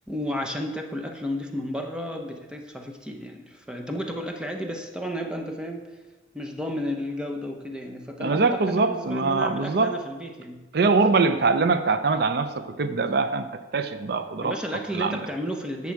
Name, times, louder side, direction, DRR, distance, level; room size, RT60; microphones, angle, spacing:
voice 1, 0.1-5.9 6.3-10.6 14.4-15.9, equal, 5° right, 3 dB, 0.8 m, -32 dB
voice 2, 8.2-9.9 10.7-13.5 13.7-14.6 14.9-15.3, right 4 dB, 60° right, 10 dB, 0.5 m, -23 dB
10.5 x 7.3 x 4.7 m, 1.2 s
head